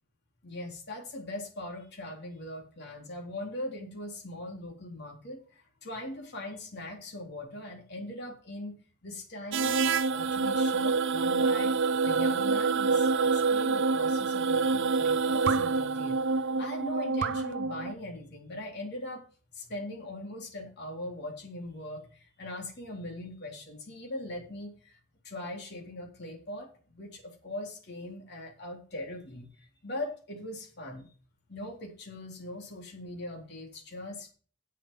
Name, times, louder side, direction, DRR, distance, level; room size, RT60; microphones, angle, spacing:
voice 1, 0.4-16.2 16.6-19.2 19.5-25.0 25.2-31.1 31.5-34.3, left 1 dB, 50° left, 0 dB, 3.8 m, -41 dB
sound 1, 9.5-17.9, right 4 dB, 60° right, 0.5 m, -27 dB
8.2 x 7.6 x 7.5 m, 0.40 s
head